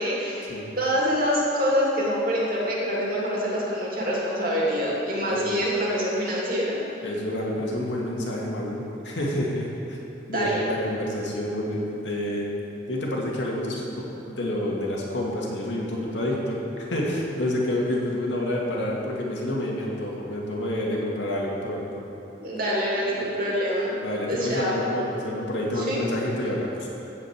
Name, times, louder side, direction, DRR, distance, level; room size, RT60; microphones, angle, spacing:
voice 1, 0.0-0.5 0.8-6.8 10.3-10.7 22.4-23.9 24.3-24.8 25.7-26.0, equal, 50° right, -4 dB, 2.5 m, -25 dB
voice 2, 7.0-10.0 10.3-12.5 12.9-16.6 16.9-22.0 23.1-23.3 23.9-26.9, left 1 dB, 80° left, -3 dB, 2.2 m, -28 dB
15.5 x 5.2 x 7.5 m, 2.9 s
head